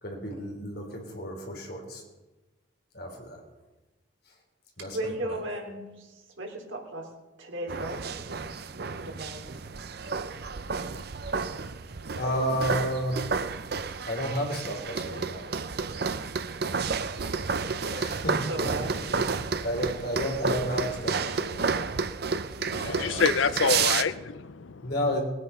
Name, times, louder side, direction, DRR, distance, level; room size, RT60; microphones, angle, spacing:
voice 1, 0.0-2.0 2.9-3.4 4.8-5.3 12.1-13.4 14.0-15.5 17.9-18.3 19.1-21.9 22.8-23.3 24.8-25.2, equal, 50° left, 1 dB, 3.4 m, -32 dB
voice 2, 4.8-7.1 7.4-8.1 9.0-9.4 17.9-19.0, right 1 dB, 80° right, 1 dB, 3.2 m, -36 dB
sound 1, 7.7-24.0, right 5 dB, 55° right, 0.6 m, -31 dB
voice 3, 22.6-24.9, left 5 dB, 75° left, 14 dB, 0.6 m, -27 dB
20.5 x 9.1 x 5.6 m, 1.1 s
head